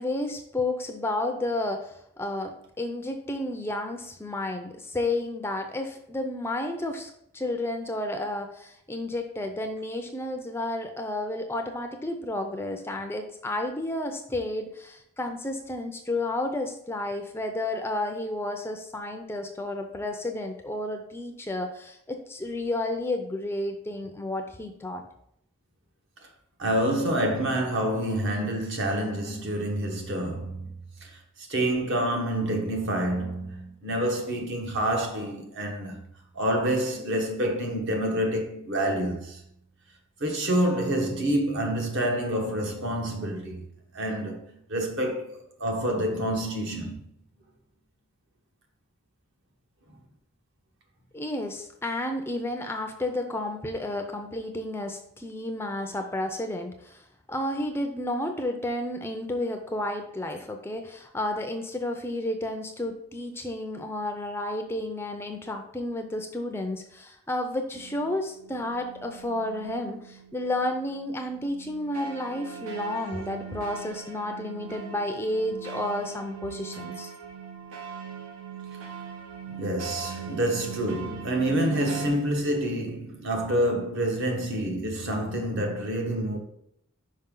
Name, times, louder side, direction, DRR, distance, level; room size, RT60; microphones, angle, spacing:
voice 1, 0.0-25.0 51.1-77.1, left 1 dB, 10° left, 0.4 m, -31 dB
voice 2, 26.6-36.0 36.3-39.4 40.2-43.7 43.9-44.4 44.7-47.0 79.5-86.4, right 1 dB, 60° right, 1.3 m, -27 dB
sound 1, 67.7-82.1, right 7 dB, 85° right, 1.0 m, -41 dB
5.5 x 5.1 x 3.8 m
head